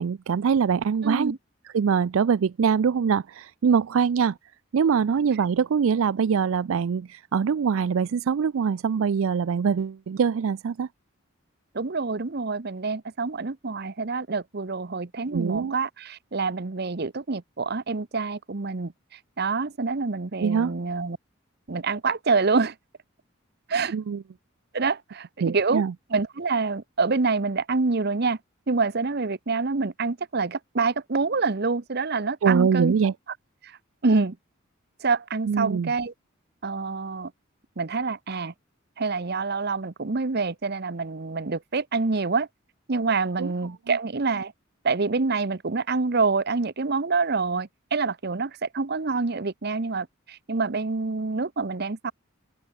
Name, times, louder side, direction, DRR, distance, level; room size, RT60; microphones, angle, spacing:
voice 1, 0.0-1.3 1.7-4.4 4.7-10.9 15.3-15.8 20.4-20.7 23.9-24.2 25.4-25.9 32.4-33.1 35.5-35.9 43.4-43.5, right 6 dB, 75° right, 0.4 m, -23 dB
voice 2, 1.0-1.4 11.7-18.9 19.4-21.2 21.7-22.7 23.7-23.9 24.7-25.8 26.1-28.4 28.7-32.9 33.6-33.7 34.0-34.4 35.0-36.1 36.6-37.3 37.8-38.5 39.0-42.5 42.9-44.5 44.8-52.1, right 4 dB, 50° right, 0.9 m, -26 dB
open air
head